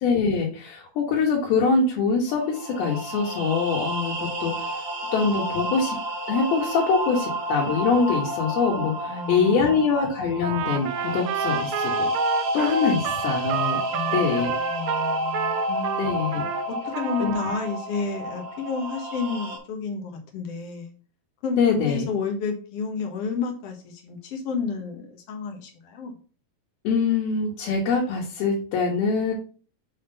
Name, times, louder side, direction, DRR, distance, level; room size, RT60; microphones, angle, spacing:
voice 1, 0.0-4.5 5.1-6.0 6.3-12.1 12.5-13.8 14.1-14.5 16.0-16.4 17.2-17.3 21.6-22.1 26.8-29.3, left 5 dB, 85° left, 3.2 m, -24 dB
sound 1, 2.3-19.6, right 1 dB, 45° right, 2.6 m, -30 dB
voice 2, 9.1-9.7 13.7-16.1 16.7-20.9 21.4-26.1, left 5 dB, 55° left, 1.8 m, -31 dB
Trumpet, 10.4-16.6 16.9-17.7, right 11 dB, 85° right, 2.4 m, -30 dB
6.4 x 3.6 x 5.4 m
omnidirectional pair, 4.2 m